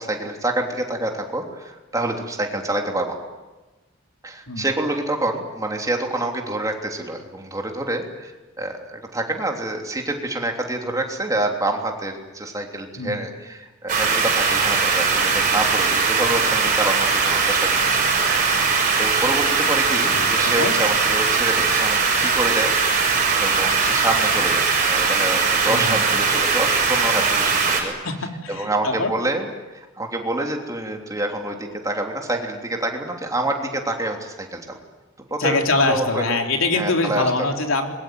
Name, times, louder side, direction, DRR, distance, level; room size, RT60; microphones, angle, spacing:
voice 1, 0.0-3.2 4.2-8.3 8.6-18.1 19.0-23.1 23.3-27.9 28.5-29.5 29.7-34.8 35.3-36.4 36.7-37.5, right 2 dB, 15° right, 2 dB, 3.3 m, -27 dB
sound 1, 13.9-27.8, right 5 dB, 40° right, 6.5 m, -20 dB
voice 2, 20.2-20.7 25.7-26.0 28.0-29.1 35.4-37.9, left 3 dB, 80° left, 3 dB, 3.5 m, -23 dB
25.5 x 22.0 x 9.6 m, 1.2 s
head